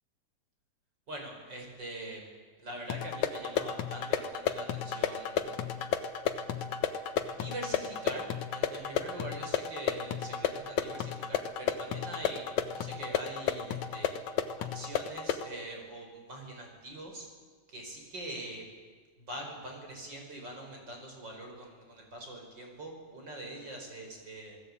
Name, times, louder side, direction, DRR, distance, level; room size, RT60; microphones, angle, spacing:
voice 1, 1.1-2.2 2.6-5.6 7.3-8.2 8.5-12.4 12.8-14.2 14.6-17.3 17.7-18.6 19.2-24.6, right 1 dB, 25° right, 2 dB, 5.5 m, -43 dB
sound 1, 2.9-15.5, left 8 dB, 65° left, 2.0 m, -33 dB
27.5 x 19.5 x 8.7 m, 1.5 s
omnidirectional pair, 4.8 m